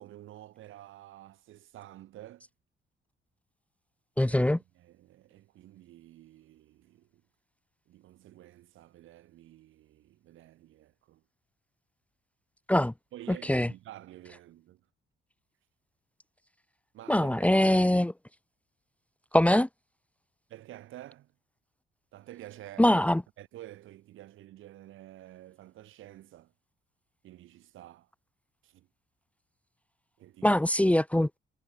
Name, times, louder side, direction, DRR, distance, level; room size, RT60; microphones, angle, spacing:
voice 1, 0.0-2.5 4.3-4.4 4.8-7.1 7.9-11.2 13.1-14.8 16.9-17.9 20.5-21.3 22.1-22.9 23.4-26.5 27.2-28.1 28.6-28.9 30.2-30.5, right 14 dB, 85° right, 4.5 m, -50 dB
voice 2, 4.2-4.6 12.7-12.9 13.3-13.7 17.1-18.1 19.3-19.7 22.8-23.2 30.4-31.3, left 1 dB, 5° left, 0.9 m, -23 dB
cardioid pair, 90°, 20 cm